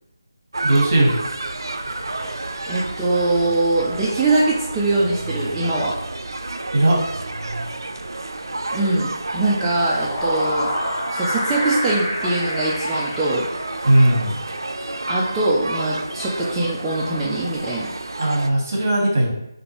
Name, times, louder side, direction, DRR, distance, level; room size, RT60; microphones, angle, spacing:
sound 1, 0.5-18.5, right 2 dB, 90° right, 0.3 m, -30 dB
voice 1, 0.6-1.1 6.7-7.0 13.8-14.4 18.2-19.3, right 1 dB, 40° right, -2 dB, 1.2 m, -17 dB
voice 2, 2.2-5.9 8.7-10.7 11.1-13.4 15.1-17.9, right 2 dB, 5° right, -9 dB, 0.3 m, -22 dB
sound 2, 9.8-14.1, equal, 25° left, 0.7 m, -27 dB
3.5 x 2.5 x 2.9 m, 0.84 s
figure-of-eight pair, 170°, 2 cm